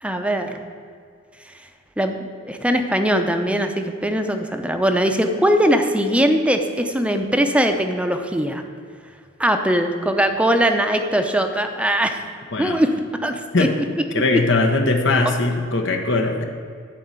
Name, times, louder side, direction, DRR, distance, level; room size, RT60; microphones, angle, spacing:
voice 1, 0.0-0.6 2.0-2.1 2.5-8.6 9.4-12.2 12.6-12.9 13.2-13.7, equal, 5° right, 6 dB, 0.7 m, -20 dB
voice 2, 14.1-16.4, left 2 dB, 65° left, 4 dB, 1.1 m, -20 dB
12.5 x 4.2 x 8.1 m, 2.2 s
head